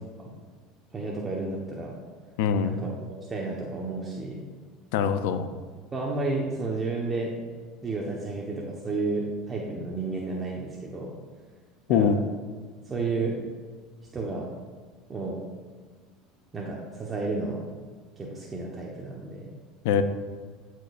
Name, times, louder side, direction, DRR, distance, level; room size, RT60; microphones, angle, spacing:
voice 1, 0.9-2.0 2.6-4.4 5.9-7.3 7.8-11.1 11.9-12.2 12.8-13.5 14.1-14.5 15.1-15.4 16.5-17.7 18.2-19.5, right 3 dB, 25° right, -2 dB, 1.0 m, -32 dB
voice 2, 2.4-2.8 4.9-5.5 11.9-12.2 19.8-20.0, left 7 dB, 75° left, 11 dB, 0.5 m, -23 dB
12.5 x 4.6 x 2.5 m, 1.5 s
supercardioid pair, 100°, 0 cm